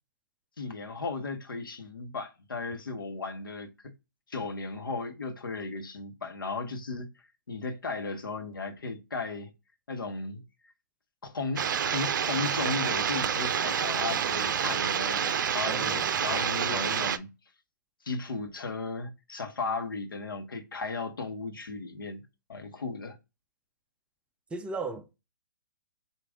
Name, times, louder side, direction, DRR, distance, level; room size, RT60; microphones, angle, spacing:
voice 1, 0.6-3.7 4.3-7.1 7.5-9.5 9.9-10.4 11.2-17.3 18.0-22.2 22.5-23.2, left 4 dB, 80° left, 1.0 m, -35 dB
sound 1, 11.6-17.2, right 8 dB, 65° right, 0.5 m, -28 dB
voice 2, 15.7-16.1 24.5-25.1, right 3 dB, 10° right, 0.4 m, -36 dB
5.0 x 2.5 x 3.5 m
hypercardioid pair, 130°, 11 cm